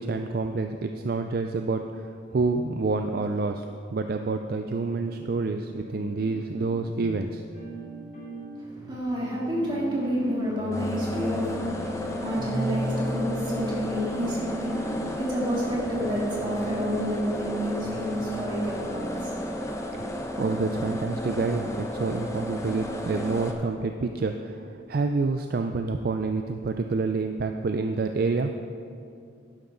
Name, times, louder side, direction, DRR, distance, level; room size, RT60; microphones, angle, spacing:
voice 1, 0.0-7.4 20.0-28.5, right 3 dB, 50° right, 6 dB, 0.4 m, -28 dB
sound 1, 5.2-21.0, right 1 dB, 45° left, 3.0 m, -39 dB
voice 2, 8.6-20.1, equal, 25° right, -6 dB, 2.9 m, -30 dB
sound 2, 10.7-23.5, left 1 dB, 15° left, 0.8 m, -33 dB
11.5 x 11.0 x 3.8 m, 2.5 s
head